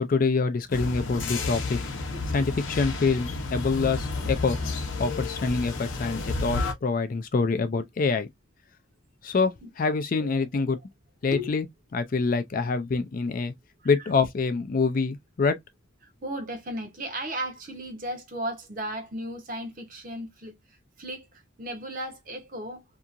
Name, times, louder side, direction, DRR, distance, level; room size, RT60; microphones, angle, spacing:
voice 1, 0.0-1.8 2.3-4.6 5.0-8.3 9.2-10.8 11.2-11.7 11.9-13.5 13.8-15.6, left 4 dB, 40° left, 0.4 m, -26 dB
sound 1, 0.7-6.7, left 3 dB, 65° left, 0.7 m, -31 dB
voice 2, 2.1-2.5 9.6-9.7 10.2-10.8 11.3-11.5 13.8-13.9 16.0-20.5 21.0-22.8, equal, 40° right, 0.8 m, -36 dB
2.8 x 2.4 x 2.4 m
head